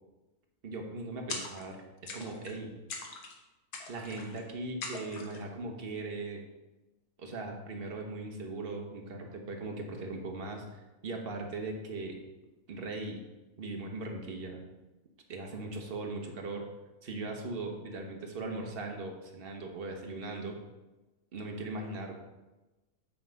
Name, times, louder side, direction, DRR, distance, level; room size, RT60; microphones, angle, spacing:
voice 1, 0.6-2.7 3.9-6.4 7.2-10.6 11.0-12.2 12.7-13.2 13.6-14.6 15.3-16.7 17.0-20.6 21.3-22.1, right 2 dB, 45° right, 2 dB, 1.1 m, -39 dB
sound 1, 1.3-1.8 2.1-2.6 2.9-3.4 3.7-4.4 4.8-5.4, left 4 dB, 80° left, 1.5 m, -41 dB
8.3 x 3.9 x 5.1 m, 1.1 s
omnidirectional pair, 1.6 m